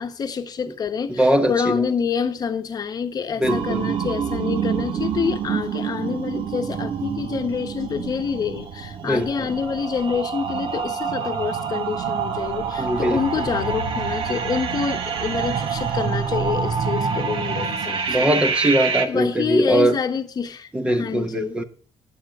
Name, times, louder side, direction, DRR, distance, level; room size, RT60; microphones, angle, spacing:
voice 1, 0.0-18.3 19.1-21.6, left 6 dB, 35° left, 1.2 m, -27 dB
voice 2, 1.2-1.9 3.4-3.9 9.0-9.3 12.8-13.2 18.1-20.0 20.7-21.6, right 1 dB, 10° right, 1.1 m, -21 dB
sound 1, 3.4-19.0, right 6 dB, 55° right, 1.7 m, -26 dB
15.5 x 10.5 x 3.7 m
cardioid pair, 160°, 11 cm